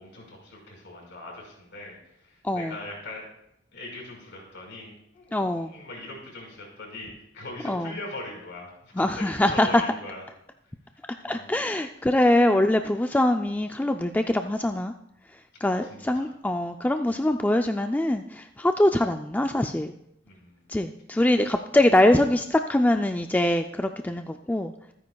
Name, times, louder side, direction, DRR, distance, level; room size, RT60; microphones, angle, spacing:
voice 1, 0.0-3.2 3.7-10.2 10.9-11.0 11.3-11.5 15.5-16.3 17.1-17.2 20.2-20.7, left 2 dB, 65° left, -1 dB, 4.9 m, -41 dB
voice 2, 2.4-2.7 5.3-5.7 7.7-7.9 9.0-9.8 11.2-14.9 15.6-19.9 20.7-24.7, left 1 dB, 10° left, 6 dB, 0.3 m, -23 dB
24.0 x 9.5 x 2.3 m, 0.78 s
head